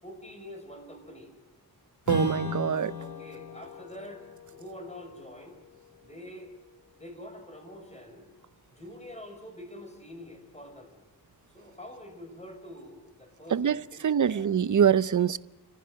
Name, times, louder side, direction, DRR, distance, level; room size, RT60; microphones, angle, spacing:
voice 1, 0.0-1.3 3.0-5.6 6.0-6.5 6.9-8.3 8.7-10.9 11.5-14.6, left 1 dB, 15° left, 5.7 m, -46 dB
Strum, 2.0-7.0, left 3 dB, 50° left, 5.2 m, -38 dB
voice 2, 2.1-2.9 13.5-13.8 14.0-15.4, right 8 dB, 50° right, 0.7 m, -24 dB
29.5 x 15.0 x 7.6 m
wide cardioid pair, 135°, 39 cm